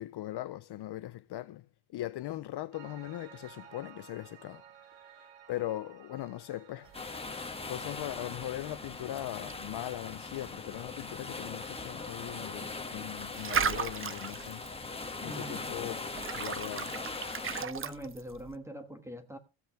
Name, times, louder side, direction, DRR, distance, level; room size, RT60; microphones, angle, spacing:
voice 1, 0.0-1.7 1.9-4.6 5.1-6.9 7.7-14.6 15.2-16.1 16.3-16.9, left 14 dB, 60° left, 0.5 m, -39 dB
Piano, 2.7-14.0, right 9 dB, 70° right, 1.6 m, -57 dB
sound 1, 6.8-18.6, right 7 dB, 30° right, 0.5 m, -39 dB
sound 2, 6.9-17.6, left 3 dB, 10° left, 1.1 m, -40 dB
voice 2, 15.2-15.6 17.6-19.4, equal, 5° right, 1.3 m, -42 dB
15.5 x 8.0 x 3.4 m
wide cardioid pair, 175°, 47 cm